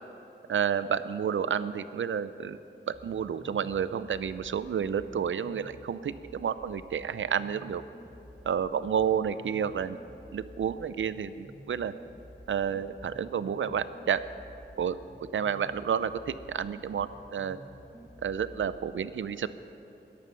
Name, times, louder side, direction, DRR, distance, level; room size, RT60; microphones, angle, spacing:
voice 1, 0.5-2.6 2.9-7.8 8.4-10.0 10.3-11.9 12.5-14.2 14.8-15.0 15.3-17.6 18.2-19.5, right 8 dB, 80° right, 14 dB, 0.6 m, -30 dB
sound 1, 2.9-18.9, equal, 5° right, 1.4 m, -51 dB
20.0 x 11.5 x 5.7 m, 2.9 s
wide cardioid pair, 135°, 20 cm